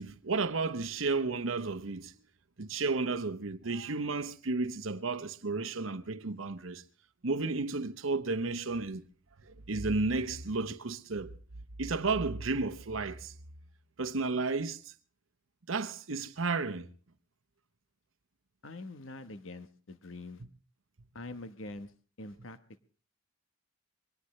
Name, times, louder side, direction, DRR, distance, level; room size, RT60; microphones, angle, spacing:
voice 1, 0.0-2.2 2.6-6.8 7.2-9.1 9.4-11.3 11.8-13.3 14.0-14.9 15.7-16.9, right 3 dB, 80° right, 1.0 m, -33 dB
voice 2, 18.6-20.4 21.1-21.9 22.2-22.6, left 2 dB, 70° left, 1.2 m, -44 dB
23.0 x 18.0 x 3.2 m
head